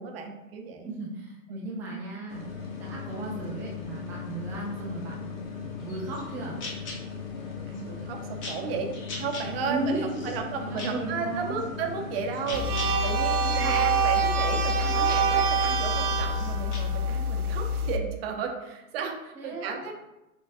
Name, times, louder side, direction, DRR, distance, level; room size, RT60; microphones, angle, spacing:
voice 1, 0.0-0.9 1.5-1.7 7.4-8.9 9.2-9.9 10.2-19.9, right 5 dB, 45° right, 3 dB, 0.8 m, -34 dB
voice 2, 0.8-5.3 5.6-6.6 9.6-11.6 13.4-13.7 19.3-19.8, right 2 dB, 5° right, -4 dB, 0.3 m, -36 dB
sound 1, 2.3-13.0, left 6 dB, 65° left, 1.1 m, -38 dB
sound 2, 5.8-16.8, left 2 dB, 25° left, 1.1 m, -44 dB
sound 3, 12.5-18.0, right 2 dB, 90° right, 0.6 m, -25 dB
6.1 x 3.0 x 2.5 m, 0.96 s
figure-of-eight pair, 100°, 43 cm